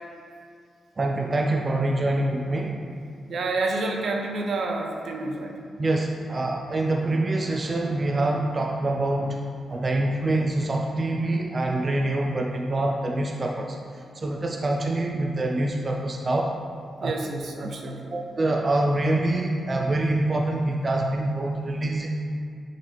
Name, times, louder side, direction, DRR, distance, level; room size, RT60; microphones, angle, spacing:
voice 1, 1.0-2.8 5.8-9.4 9.7-13.8 14.2-16.5 17.0-17.1 18.1-22.1, right 2 dB, 35° right, 0 dB, 0.5 m, -25 dB
voice 2, 3.3-5.6 17.0-18.1, right 3 dB, 70° right, 2 dB, 0.7 m, -29 dB
7.3 x 3.9 x 3.4 m, 2.3 s
cardioid pair, 100°, 0 cm